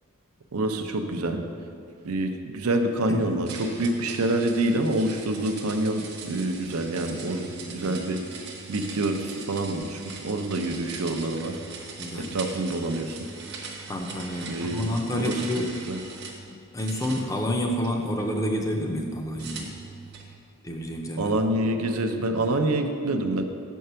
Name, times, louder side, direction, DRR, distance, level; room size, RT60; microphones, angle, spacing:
voice 1, 0.5-1.4 2.0-8.2 8.7-11.6 12.1-13.2 14.5-15.4 15.8-16.0 21.2-23.4, right 1 dB, 80° right, 6 dB, 0.6 m, -27 dB
sound 1, 3.5-16.4 16.8-18.3 19.4-20.3, right 4 dB, 50° right, 0.8 m, -41 dB
voice 2, 7.5-8.0 12.0-12.3 13.9-15.7 16.5-19.7 20.6-21.4, left 1 dB, 15° left, 2 dB, 0.5 m, -29 dB
6.6 x 4.6 x 6.7 m, 2.4 s
head